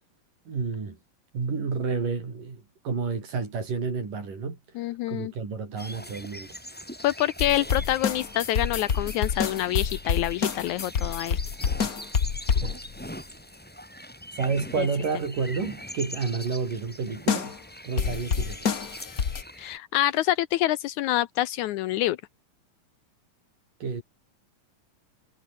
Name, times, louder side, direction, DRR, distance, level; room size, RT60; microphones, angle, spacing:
voice 1, 0.5-1.0 1.3-4.6 5.1-6.5 12.6-12.8 14.4-17.5 17.8-18.7 23.8-24.0, right 5 dB, 75° right, 7.1 m, -30 dB
voice 2, 4.8-5.3 7.0-11.4 14.8-14.9 19.6-22.2, left 14 dB, 75° left, 1.9 m, -26 dB
sound 1, 5.8-19.8, equal, 5° left, 3.7 m, -42 dB
sound 2, 7.4-13.0 17.3-17.6 18.0-19.4, left 6 dB, 45° left, 1.2 m, -27 dB
omnidirectional pair, 3.8 m